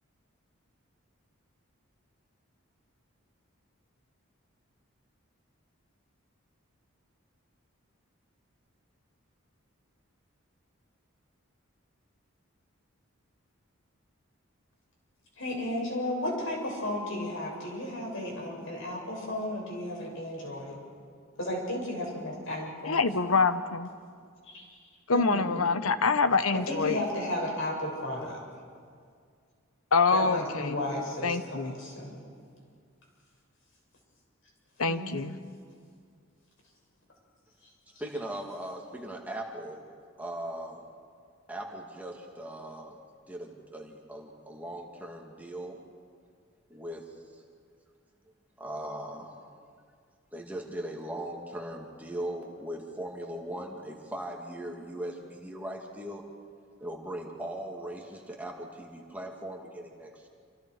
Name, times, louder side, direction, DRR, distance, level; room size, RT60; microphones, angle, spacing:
voice 1, 15.4-20.8 21.4-23.1 24.5-24.7 25.1-25.7 26.5-28.4 30.1-32.2 34.8-35.2, left 1 dB, 65° left, -1 dB, 6.7 m, -34 dB
voice 2, 22.9-23.9 25.1-27.0 29.9-30.8 31.2-31.7 34.8-35.4, left 4 dB, 90° left, 11 dB, 1.0 m, -25 dB
voice 3, 38.0-39.8 40.2-40.8 41.5-43.0 43.3-45.8 46.7-47.1 48.6-49.5 50.3-56.2 56.8-60.3, right 1 dB, 5° right, 0 dB, 2.3 m, -39 dB
27.5 x 27.0 x 4.9 m, 2.1 s
head